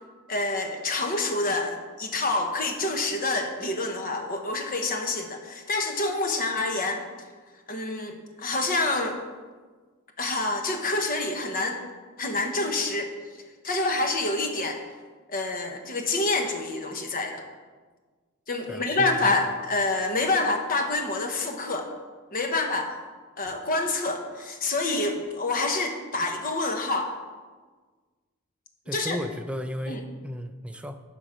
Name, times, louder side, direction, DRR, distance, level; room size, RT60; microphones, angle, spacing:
voice 1, 0.3-7.0 7.7-9.2 10.2-11.8 12.2-13.1 13.6-14.8 15.3-17.4 18.5-21.9 22.3-22.9 23.4-27.1 28.9-29.2 29.9-30.0, left 2 dB, 40° left, 4 dB, 1.1 m, -27 dB
voice 2, 18.7-19.4 28.9-31.0, equal, 5° right, 7 dB, 0.4 m, -34 dB
12.0 x 5.1 x 5.1 m, 1.4 s
head